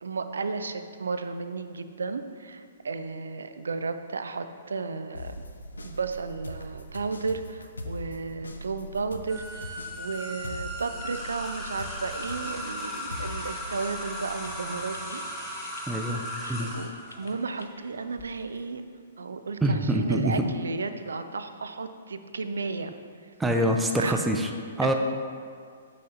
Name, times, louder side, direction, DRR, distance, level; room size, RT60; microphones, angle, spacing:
voice 1, 0.0-5.3 5.8-15.2 15.6-16.1 16.6-18.8 19.2-23.0 23.2-23.3 24.0-24.2, right 4 dB, 70° right, 9 dB, 0.3 m, -34 dB
sound 1, 5.1-16.8 17.1-17.8, equal, 80° left, 0.4 m, -42 dB
sound 2, 9.3-18.2, equal, 10° left, 0.9 m, -37 dB
voice 2, 15.9-16.2 16.5-16.7 19.6-20.4 23.4-24.5 24.8-24.9, right 1 dB, 5° right, 3 dB, 0.4 m, -25 dB
6.1 x 5.7 x 2.7 m, 2.1 s
figure-of-eight pair, 120°, 0 cm